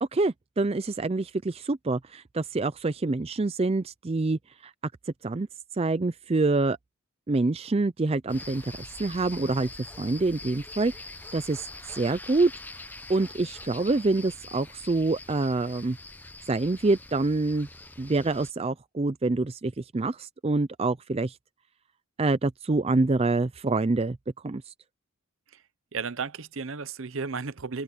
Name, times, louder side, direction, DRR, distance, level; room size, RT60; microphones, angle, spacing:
voice 1, 0.0-4.7 5.2-5.5 5.7-6.8 7.3-8.6 9.0-9.7 10.0-10.9 11.3-11.7 11.9-12.5 13.1-16.0 16.5-17.7 18.0-21.4 22.2-24.2 24.4-24.7, right 3 dB, 25° right, 0.4 m, -26 dB
sound 1, 8.3-18.5, left 2 dB, 10° left, 0.9 m, -44 dB
voice 2, 25.9-27.8, right 5 dB, 60° right, 0.8 m, -34 dB
head